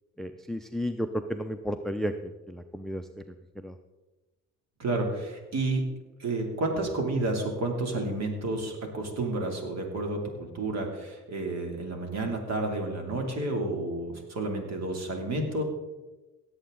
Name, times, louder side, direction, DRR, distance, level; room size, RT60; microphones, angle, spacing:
voice 1, 0.2-3.0 3.6-3.8, equal, ahead, 9 dB, 0.5 m, -33 dB
voice 2, 4.8-5.8 6.2-15.6, right 2 dB, 60° right, 2 dB, 2.8 m, -30 dB
17.5 x 7.9 x 3.8 m, 1.1 s
cardioid pair, 90°, 30 cm